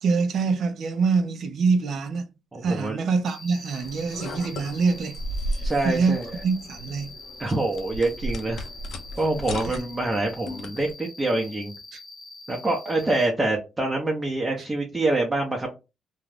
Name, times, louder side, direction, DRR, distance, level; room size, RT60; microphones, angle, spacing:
voice 1, 0.0-2.3 2.6-5.2 5.5-6.2 6.4-7.1 9.7-9.8 11.9-12.0, right 4 dB, 65° right, 0.6 m, -25 dB
voice 2, 2.5-3.0 5.6-6.3 7.4-8.6 9.2-11.7 12.5-15.7, right 2 dB, 20° right, 0.7 m, -26 dB
Cricket, 3.3-13.3, left 3 dB, 25° left, 0.9 m, -44 dB
sound 1, 3.8-10.9, equal, 65° left, 0.7 m, -35 dB
2.5 x 2.3 x 3.2 m
cardioid pair, 90°, 0 cm